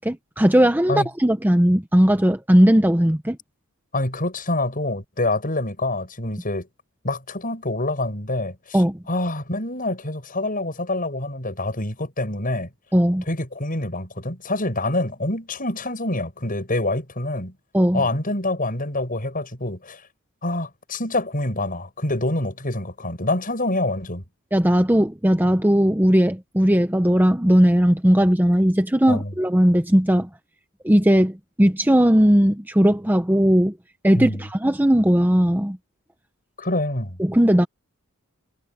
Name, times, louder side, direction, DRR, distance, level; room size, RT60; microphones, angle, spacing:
voice 1, 0.0-3.4 8.7-9.0 12.9-13.2 17.7-18.0 24.5-30.3 30.8-33.7 34.0-35.8 37.2-37.7, equal, 10° right, 0.9 m, -18 dB
voice 2, 3.9-6.7 7.0-8.8 9.1-12.7 13.3-17.5 17.9-20.0 20.4-24.2 29.1-29.3 34.1-34.4 36.6-37.2, left 2 dB, 40° left, 7.7 m, -26 dB
head